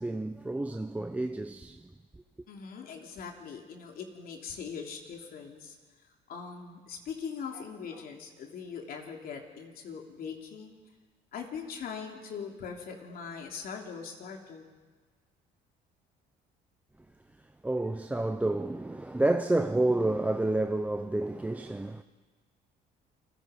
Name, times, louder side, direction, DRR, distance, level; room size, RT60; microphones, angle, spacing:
voice 1, 0.0-1.9 17.6-22.0, right 2 dB, 10° right, 0.7 m, -29 dB
voice 2, 2.5-5.8 6.0-10.8 11.3-14.7, left 6 dB, 60° left, 3.3 m, -41 dB
29.0 x 20.0 x 5.3 m
cardioid pair, 110°, 17 cm